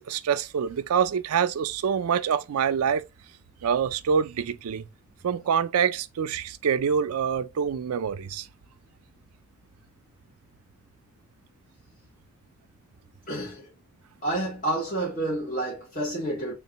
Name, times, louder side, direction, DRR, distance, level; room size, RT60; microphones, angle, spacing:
voice 1, 0.0-3.0 3.6-4.8 5.2-8.5, right 7 dB, 80° right, 0.4 m, -26 dB
voice 2, 13.3-13.7 14.2-16.5, right 1 dB, 35° left, 1.3 m, -29 dB
3.7 x 2.5 x 3.9 m
head